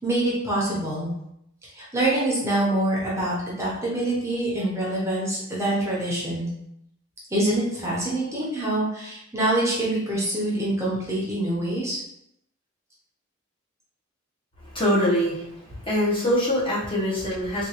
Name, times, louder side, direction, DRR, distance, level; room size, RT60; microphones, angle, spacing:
voice 1, 0.0-1.1 1.7-6.5 7.3-12.0, right 1 dB, 15° right, -6 dB, 0.8 m, -25 dB
voice 2, 14.7-15.5 15.8-17.7, equal, 25° left, -7 dB, 1.1 m, -23 dB
3.6 x 2.5 x 3.0 m, 0.78 s
head